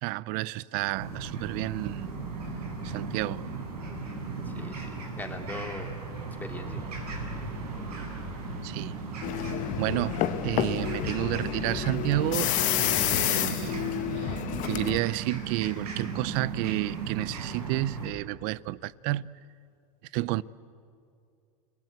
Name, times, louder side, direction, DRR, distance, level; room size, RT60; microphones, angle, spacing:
voice 1, 0.0-2.1 2.8-3.4 8.6-9.0 9.3-9.4 9.8-10.2 10.4-13.8 14.1-19.3 20.1-20.4, right 17 dB, 50° right, 0.6 m, -31 dB
sound 1, 0.9-18.1, right 3 dB, 90° right, 7.7 m, -37 dB
voice 2, 4.4-7.0, left 2 dB, 10° left, 2.6 m, -41 dB
sound 2, 6.7-17.1, right 11 dB, 65° right, 2.2 m, -43 dB
sound 3, 9.2-15.0, left 14 dB, 40° left, 1.1 m, -29 dB
30.0 x 20.5 x 8.1 m
supercardioid pair, 125°, 19 cm